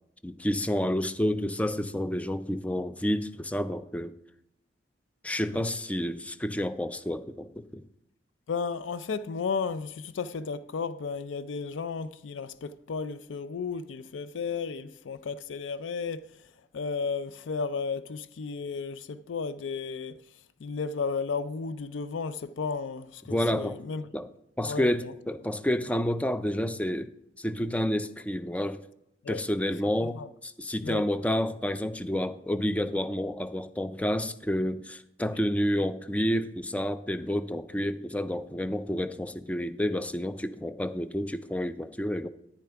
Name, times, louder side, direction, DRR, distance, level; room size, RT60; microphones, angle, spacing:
voice 1, 0.2-4.1 5.2-7.8 23.3-23.8 24.1-24.3 24.6-28.8 29.3-42.3, equal, 5° left, 0.4 m, -29 dB
voice 2, 8.5-16.3 16.7-20.2 20.6-24.1 24.7-25.1 29.2-29.4 30.2-30.3 30.8-31.0, left 5 dB, 85° left, 0.4 m, -33 dB
10.0 x 9.4 x 3.4 m
head